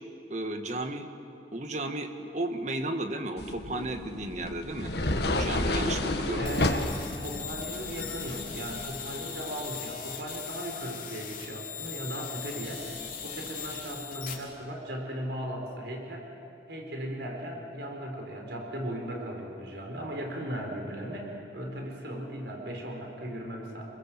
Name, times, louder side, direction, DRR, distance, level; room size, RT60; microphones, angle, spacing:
voice 1, 0.3-1.1 1.5-4.9 5.2-6.4, right 2 dB, 40° right, 6 dB, 1.7 m, -34 dB
sound 1, 3.4-8.9, left 2 dB, 65° left, 1.8 m, -31 dB
voice 2, 5.7-16.3 16.7-23.8, right 1 dB, 75° right, 1 dB, 4.6 m, -37 dB
sound 2, 6.5-14.3, left 8 dB, 45° left, 3.7 m, -40 dB
29.0 x 22.0 x 7.7 m, 2.9 s
head